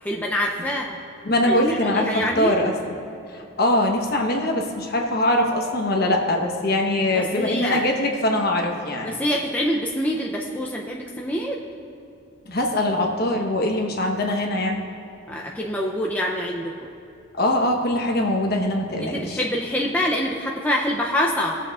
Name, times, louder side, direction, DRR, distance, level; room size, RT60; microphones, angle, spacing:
voice 1, 0.0-1.0 1.4-2.7 7.1-7.9 9.0-11.6 15.3-16.9 19.0-21.6, equal, 10° left, -2 dB, 0.4 m, -26 dB
voice 2, 1.2-2.1 2.4-2.7 3.3-9.1 12.5-14.8 17.3-19.4, left 1 dB, 50° left, 1 dB, 1.0 m, -22 dB
19.0 x 7.1 x 2.4 m, 2.7 s
head